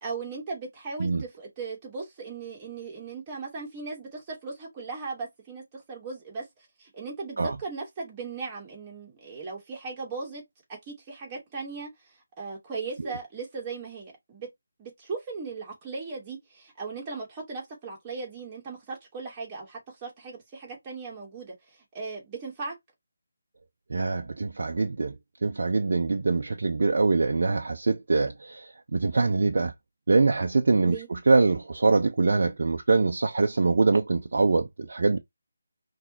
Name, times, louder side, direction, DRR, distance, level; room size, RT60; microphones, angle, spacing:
voice 1, 0.0-6.5 6.8-10.4 10.9-11.9 12.4-14.5 14.8-21.5 21.9-22.7 30.8-31.1, right 4 dB, 20° right, 2.8 m, -37 dB
voice 2, 23.9-25.1 25.4-29.7 30.1-35.2, right 3 dB, 60° right, 0.7 m, -24 dB
5.7 x 3.3 x 2.8 m
figure-of-eight pair, 155°, 0 cm